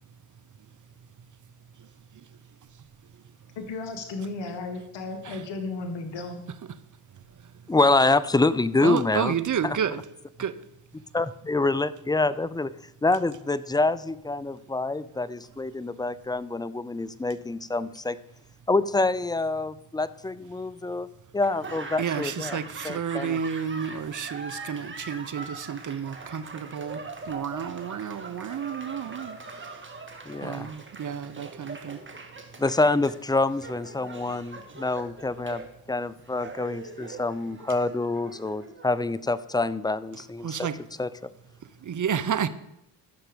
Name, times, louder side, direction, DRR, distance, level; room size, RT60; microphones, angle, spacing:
voice 1, 1.8-2.3 5.2-5.4 7.1-7.6 8.8-10.0 10.4-10.6 22.0-29.9 30.4-32.0 40.4-40.8 41.8-42.5, right 8 dB, 40° right, 0.8 m, -31 dB
voice 2, 3.5-6.4, left 3 dB, 60° left, 1.7 m, -34 dB
voice 3, 7.7-9.3 9.6-9.8 11.1-12.7 13.0-18.2 18.7-21.1 21.3-22.6 22.8-23.4 30.3-30.7 32.6-40.6 41.0-41.1, left 2 dB, 10° left, 0.5 m, -26 dB
Laughter / Applause, 21.4-39.5, right 3 dB, 25° right, 1.7 m, -42 dB
15.0 x 5.9 x 5.2 m
supercardioid pair, 60°, 47 cm